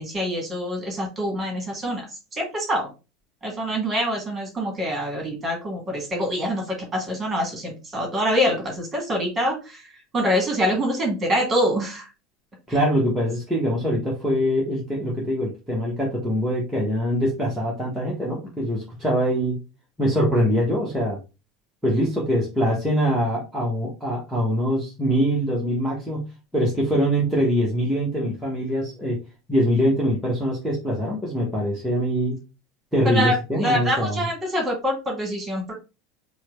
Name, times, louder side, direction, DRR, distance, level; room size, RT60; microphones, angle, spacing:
voice 1, 0.0-2.1 2.3-2.9 3.4-12.1 33.1-33.3 33.6-35.7, equal, 20° right, 1 dB, 1.8 m, -25 dB
voice 2, 12.7-19.6 20.0-21.2 21.8-26.3 26.5-29.2 29.5-32.4 32.9-34.2, equal, ahead, -6 dB, 1.1 m, -23 dB
4.6 x 2.2 x 3.0 m, 0.29 s
figure-of-eight pair, 75°, 0 cm